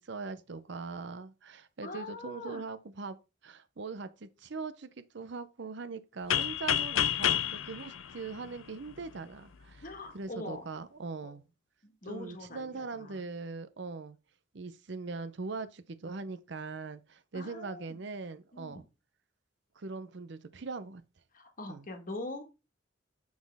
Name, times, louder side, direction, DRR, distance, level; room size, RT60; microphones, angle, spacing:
voice 1, 0.0-3.2 3.4-9.8 10.1-11.4 12.0-14.2 14.5-18.9 19.8-21.0 21.7-21.8, right 4 dB, 60° right, 0.6 m, -41 dB
voice 2, 1.8-2.6 9.8-10.7 11.2-11.3 11.8-13.3 17.3-18.0 18.5-18.8 21.3-22.4, left 2 dB, 45° left, 1.5 m, -43 dB
sound 1, 6.3-9.1, left 10 dB, 85° left, 0.6 m, -30 dB
7.3 x 6.2 x 3.5 m
head